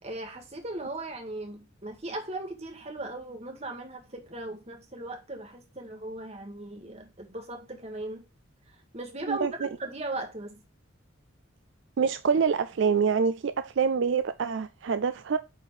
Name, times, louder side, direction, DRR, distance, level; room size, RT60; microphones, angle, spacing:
voice 1, 0.0-8.2 8.7-10.6, right 2 dB, 30° right, 1.9 m, -38 dB
voice 2, 9.3-9.7 12.0-15.4, right 6 dB, 65° right, 0.4 m, -26 dB
8.8 x 4.4 x 4.8 m
head